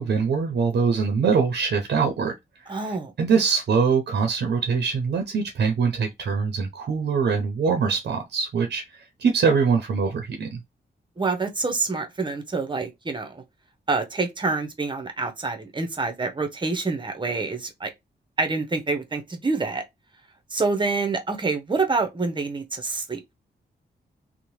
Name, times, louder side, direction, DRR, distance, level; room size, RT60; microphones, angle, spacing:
voice 1, 0.0-2.3 2.6-10.6, right 5 dB, 70° right, 0.6 m, -23 dB
voice 2, 2.7-3.1 11.2-13.4 13.9-17.9 18.4-19.8 20.5-23.3, right 3 dB, 25° right, 0.7 m, -27 dB
2.7 x 2.1 x 3.1 m
cardioid pair, 85°, 18 cm